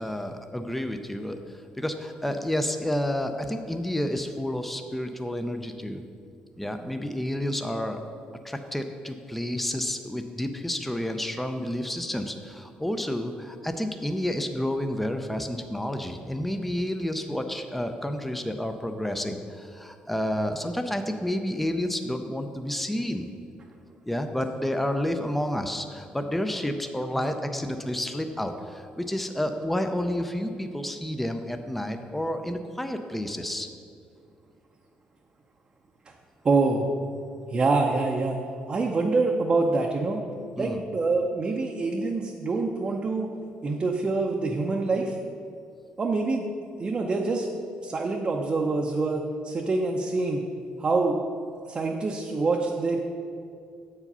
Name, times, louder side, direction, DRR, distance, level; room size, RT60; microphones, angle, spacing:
voice 1, 0.0-6.0 6.6-8.0 8.4-23.3 24.1-33.7 40.6-40.8, left 1 dB, 5° left, 6 dB, 0.5 m, -30 dB
voice 2, 36.4-36.9 37.5-38.4 38.7-40.2 40.6-43.3 43.6-45.2 46.0-46.5 46.8-47.5 47.8-50.4 50.8-51.2 51.7-53.0, right 3 dB, 35° right, 0 dB, 0.6 m, -25 dB
7.7 x 4.9 x 5.5 m, 2.4 s
cardioid pair, 95°, 3 cm